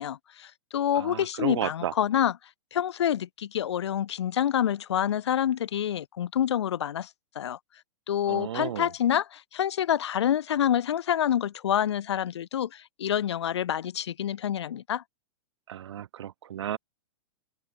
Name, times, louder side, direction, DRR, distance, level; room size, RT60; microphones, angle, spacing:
voice 1, 0.0-2.3 2.7-7.1 7.4-7.6 8.1-15.0, left 10 dB, 65° left, 4.0 m, -27 dB
voice 2, 1.0-1.9 8.3-8.9 15.7-16.8, right 10 dB, 65° right, 1.0 m, -33 dB
open air
hypercardioid pair, 175°, 15 cm